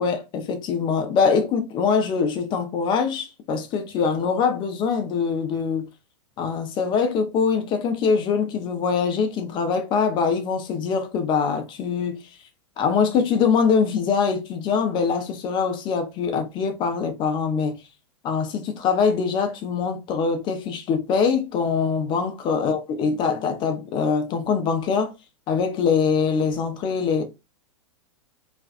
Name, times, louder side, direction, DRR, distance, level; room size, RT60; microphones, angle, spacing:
voice 1, 0.0-5.9 6.4-12.2 12.8-17.8 18.2-25.1 25.5-27.2, left 6 dB, 30° left, 0.6 m, -23 dB
2.5 x 2.3 x 2.4 m
figure-of-eight pair, 95°, 16 cm